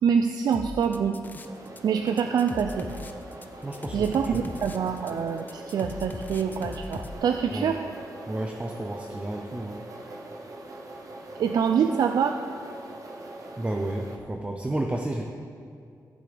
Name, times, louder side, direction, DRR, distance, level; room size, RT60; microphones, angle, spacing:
voice 1, 0.0-1.2 1.8-2.9 3.9-7.8 11.4-12.4, right 7 dB, 70° right, 6 dB, 0.4 m, -25 dB
sound 1, 0.5-1.8 2.1-7.1, left 2 dB, 25° left, 0.6 m, -39 dB
sound 2, 1.4-14.2, right 2 dB, 55° right, 1.0 m, -42 dB
voice 2, 3.6-4.4 7.5-7.7 8.3-9.8 13.6-15.2, right 1 dB, 20° right, 2 dB, 0.6 m, -31 dB
15.0 x 7.7 x 3.4 m, 2.4 s
wide cardioid pair, 115°, 7 cm